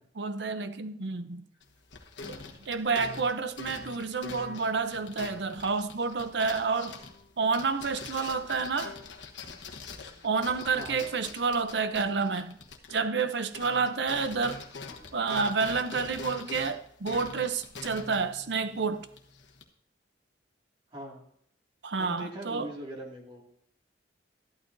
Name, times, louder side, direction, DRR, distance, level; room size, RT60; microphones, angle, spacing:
voice 1, 0.2-1.4 2.2-7.0 7.4-9.0 10.2-12.6 12.9-14.6 15.1-19.1 21.8-22.7, right 4 dB, 70° right, 0.7 m, -29 dB
sound 1, 1.6-13.2 13.5-19.6, left 4 dB, 75° left, 1.3 m, -44 dB
voice 2, 10.7-11.1 20.9-21.2 22.0-23.4, equal, 30° right, 2.3 m, -41 dB
13.5 x 11.5 x 2.7 m
head